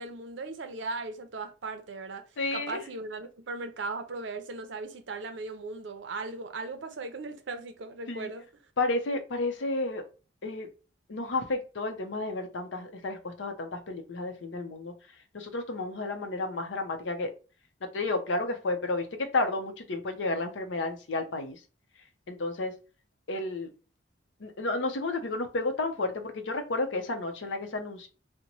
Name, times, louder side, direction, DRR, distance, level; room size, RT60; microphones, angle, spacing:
voice 1, 0.0-2.3 2.5-8.4, right 3 dB, 80° right, 0.5 m, -38 dB
voice 2, 2.4-2.8 8.1-8.3 8.8-10.0 10.4-10.7 11.1-14.9 15.3-17.3 17.9-21.6 22.3-22.7 23.3-23.7 24.4-28.1, left 2 dB, 80° left, 0.6 m, -31 dB
2.9 x 2.1 x 3.9 m
head